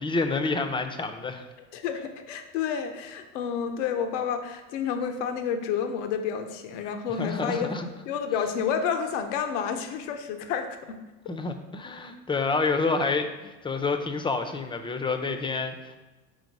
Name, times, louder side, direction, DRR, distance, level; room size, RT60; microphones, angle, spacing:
voice 1, 0.0-1.5 7.1-7.9 11.3-16.0, left 3 dB, 15° left, 7 dB, 0.5 m, -28 dB
voice 2, 1.7-7.7 8.1-10.7, left 7 dB, 85° left, 6 dB, 0.7 m, -30 dB
4.9 x 3.8 x 5.2 m, 1.1 s
supercardioid pair, 95°, 36 cm